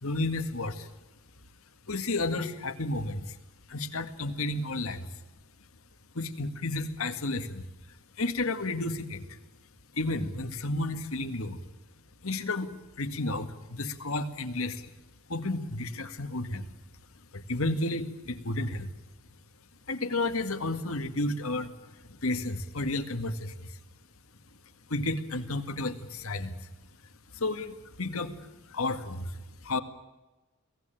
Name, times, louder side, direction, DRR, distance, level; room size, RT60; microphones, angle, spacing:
voice 1, 0.0-0.9 1.9-3.4 3.7-5.1 6.2-7.6 8.2-9.2 9.9-11.6 12.2-12.7 13.0-14.9 15.3-16.7 17.3-18.9 19.9-23.8 24.9-26.6 27.3-28.3 28.7-29.4 29.6-29.8, left 2 dB, 65° left, 9 dB, 2.0 m, -32 dB
23.5 x 17.5 x 9.2 m, 1.1 s
head